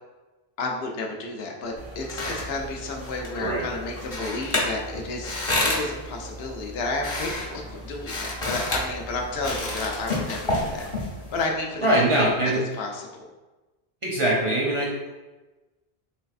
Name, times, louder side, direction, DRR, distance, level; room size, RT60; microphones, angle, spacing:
voice 1, 0.6-5.4 5.6-10.9 11.3-11.9 12.2-12.3 12.8-13.3, left 3 dB, 75° left, 1 dB, 0.8 m, -31 dB
sound 1, 1.6-12.5, right 3 dB, 75° right, 0.9 m, -46 dB
sound 2, 1.8-11.4, left 2 dB, 35° left, 0.6 m, -30 dB
voice 2, 3.4-3.7 11.8-12.6 14.0-15.1, right 1 dB, 40° right, -5 dB, 0.5 m, -22 dB
3.3 x 3.1 x 2.4 m, 1.1 s
omnidirectional pair, 1.1 m